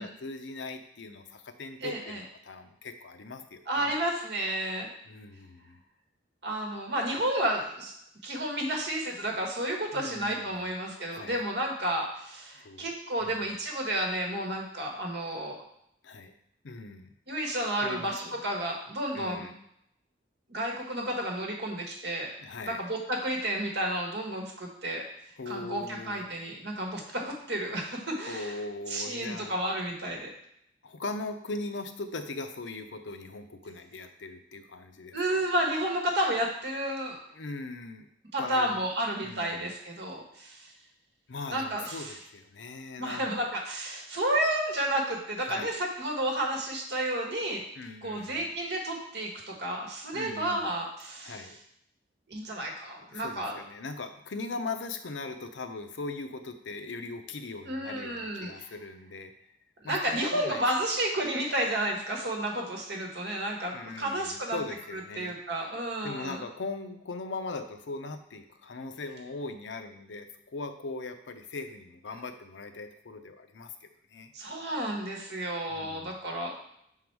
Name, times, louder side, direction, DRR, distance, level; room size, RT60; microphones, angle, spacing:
voice 1, 0.0-4.0 5.1-5.8 9.9-10.7 11.0-11.4 12.6-12.9 13.2-13.5 16.0-16.3 16.6-17.1 17.8-18.3 19.1-19.5 22.4-22.8 25.4-26.2 28.3-29.6 30.8-35.4 37.3-38.1 38.4-38.9 39.2-39.6 41.3-43.5 45.5-45.7 47.8-48.5 50.1-50.7 51.2-51.6 53.1-59.3 59.8-60.6 63.7-65.4 66.0-74.3 75.7-76.1, left 3 dB, 80° left, 8 dB, 0.6 m, -40 dB
voice 2, 1.8-2.2 3.7-4.9 6.4-7.9 8.2-15.6 17.3-19.4 20.5-22.3 22.6-25.0 25.5-28.5 28.9-30.3 35.1-37.2 38.3-40.7 41.5-42.1 43.0-47.6 48.0-51.5 52.3-53.6 57.6-58.5 59.8-64.6 64.9-66.4 74.3-76.6, right 1 dB, 65° right, 0 dB, 1.4 m, -31 dB
6.0 x 3.8 x 4.6 m, 0.74 s
head